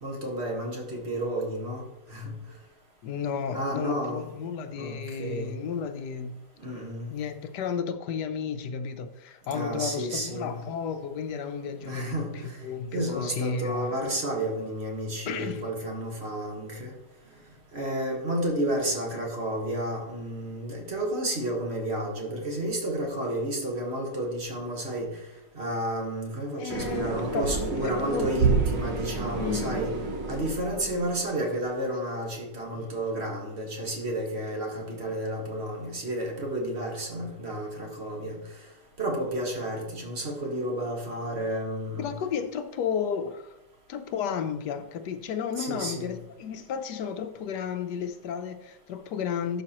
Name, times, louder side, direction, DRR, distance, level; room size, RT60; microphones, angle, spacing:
voice 1, 0.0-1.8 2.1-2.3 3.5-4.2 4.6-5.6 6.6-7.1 9.5-10.6 11.8-12.6 12.9-16.9 17.7-25.2 25.5-29.9 30.3-38.4 39.0-42.1 45.6-46.1, right 1 dB, 40° right, 1.6 m, -31 dB
voice 2, 3.0-6.4 6.7-6.8 7.1-12.3 12.6-14.0 15.3-15.6 26.6-28.3 29.4-29.8 30.9-31.1 32.7-32.9 42.0-43.6 43.9-49.6, left 7 dB, 75° left, 1.2 m, -33 dB
sound 1, 26.7-31.3, right 4 dB, 75° right, 1.8 m, -29 dB
12.0 x 5.8 x 2.9 m
omnidirectional pair, 1.9 m